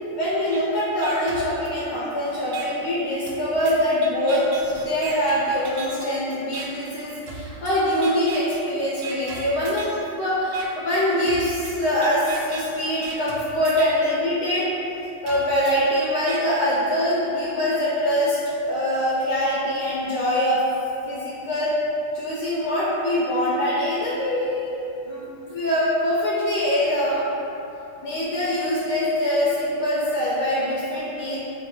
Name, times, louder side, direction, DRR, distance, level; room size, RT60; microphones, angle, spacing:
voice 1, 0.1-4.5 4.8-14.7 15.2-18.4 18.6-20.6 21.1-21.7 22.1-24.8 25.1-27.3 28.0-31.4, equal, 70° left, -8 dB, 1.3 m, -23 dB
sound 1, 0.5-0.6 1.0-2.1 2.5-2.7 3.3-6.1 6.5-6.7 7.3-7.7 8.0-8.6 9.0-10.0 10.5-10.7 11.3-14.1 14.5-14.6 15.3-16.4, right 4 dB, 75° right, 1.2 m, -38 dB
5.3 x 2.0 x 4.2 m, 2.9 s
omnidirectional pair, 2.2 m